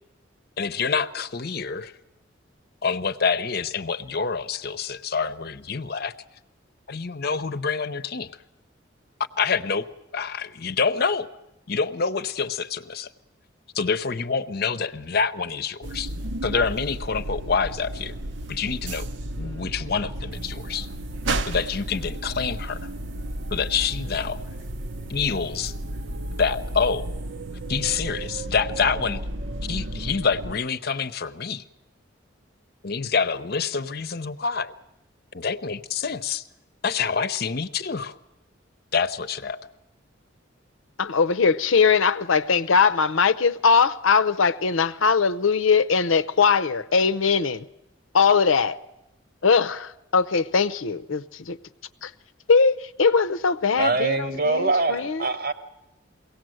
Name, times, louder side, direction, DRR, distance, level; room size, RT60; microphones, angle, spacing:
voice 1, 0.6-1.9 2.8-6.1 6.9-8.3 9.4-9.9 10.1-11.3 11.7-13.1 13.7-16.1 16.4-18.1 18.5-19.1 19.4-20.9 21.5-22.9 23.5-24.4 25.1-25.7 26.4-27.1 27.7-29.2 29.7-31.6 32.8-34.7 35.3-36.4 36.8-38.2 38.9-39.6, left 5 dB, 50° left, 0.7 m, -26 dB
sound 1, 15.8-30.6, right 1 dB, 70° right, 0.7 m, -33 dB
voice 2, 41.0-47.7 48.1-48.8 49.4-51.6 52.0-52.1 52.5-55.3, left 5 dB, 90° left, 0.7 m, -21 dB
voice 3, 53.8-55.5, right 3 dB, 50° right, 1.1 m, -23 dB
22.5 x 17.5 x 7.8 m
head